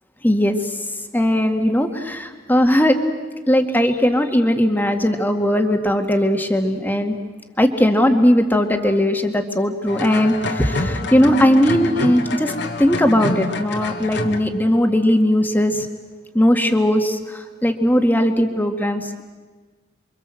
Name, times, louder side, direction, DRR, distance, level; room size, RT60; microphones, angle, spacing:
voice 1, 0.2-0.6 1.1-3.0 3.5-7.2 7.6-12.5 12.8-15.9 16.3-19.2, equal, 10° left, 5 dB, 2.0 m, -18 dB
sound 1, 9.9-14.4, left 3 dB, 65° left, 1.9 m, -27 dB
28.5 x 24.0 x 7.7 m, 1.3 s
head